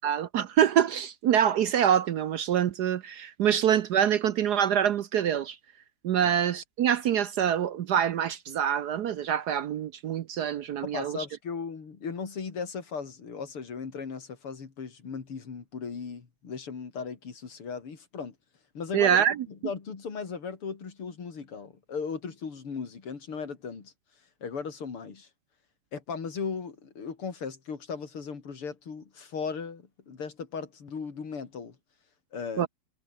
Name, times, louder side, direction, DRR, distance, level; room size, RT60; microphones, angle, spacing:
voice 1, 0.0-5.6 6.0-11.2 18.9-19.4 32.6-32.7, right 9 dB, 65° right, 1.0 m, -25 dB
voice 2, 10.8-18.3 18.7-23.9 24.4-25.3 25.9-31.8 32.3-32.7, left 5 dB, 85° left, 4.0 m, -37 dB
omnidirectional pair, 2.4 m